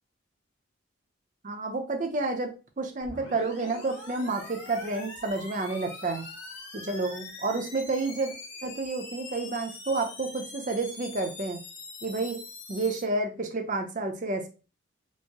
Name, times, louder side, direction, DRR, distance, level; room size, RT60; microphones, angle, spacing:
voice 1, 1.4-6.3 6.7-8.3 8.6-11.6 12.0-12.4 12.7-14.5, right 3 dB, 40° right, 5 dB, 0.6 m, -30 dB
sound 1, 3.0-13.0, left 2 dB, 55° left, 1.5 m, -43 dB
4.5 x 2.0 x 2.8 m, 0.33 s
head